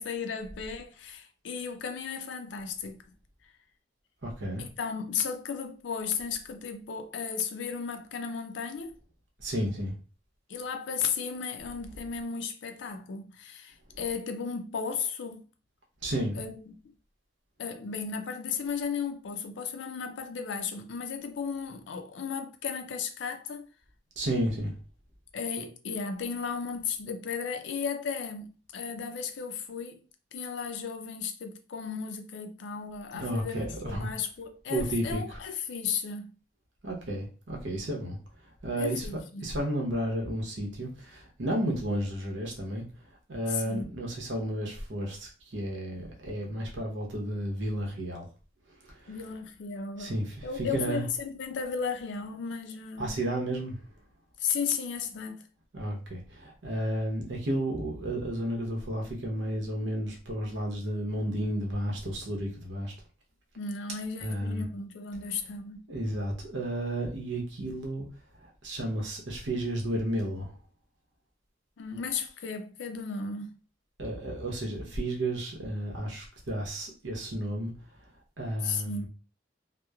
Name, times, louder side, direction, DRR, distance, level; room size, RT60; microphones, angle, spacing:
voice 1, 0.0-3.0 4.6-9.0 10.5-15.5 16.3-16.9 17.6-23.7 25.3-30.0 30.3-36.3 38.7-39.6 43.5-44.0 49.1-50.2 50.4-53.2 54.4-55.5 63.6-65.8 71.8-73.6 78.6-79.1, left 6 dB, 70° left, 0.4 m, -35 dB
voice 2, 4.2-4.6 9.4-9.9 16.0-16.4 24.2-24.8 33.1-34.1 34.7-35.4 36.8-38.2 38.6-42.8 43.3-48.3 48.9-49.1 50.0-51.0 53.0-53.8 55.7-62.9 64.2-64.6 65.9-68.1 68.6-70.5 74.0-77.7 78.4-79.1, right 1 dB, 80° right, 0.8 m, -32 dB
2.9 x 2.0 x 2.3 m
head